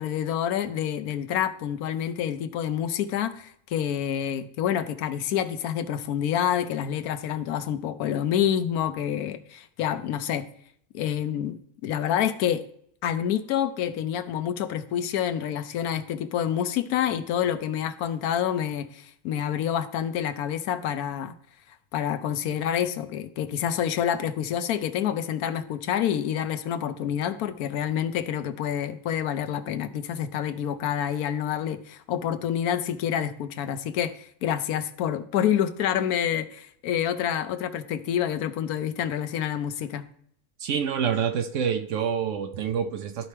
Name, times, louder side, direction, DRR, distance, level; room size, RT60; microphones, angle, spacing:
voice 1, 0.0-10.5 10.9-12.6 13.0-21.3 21.9-40.1, left 9 dB, 80° left, 1.1 m, -28 dB
voice 2, 40.6-43.3, right 7 dB, 65° right, 0.8 m, -27 dB
12.5 x 4.2 x 3.3 m
omnidirectional pair, 1.6 m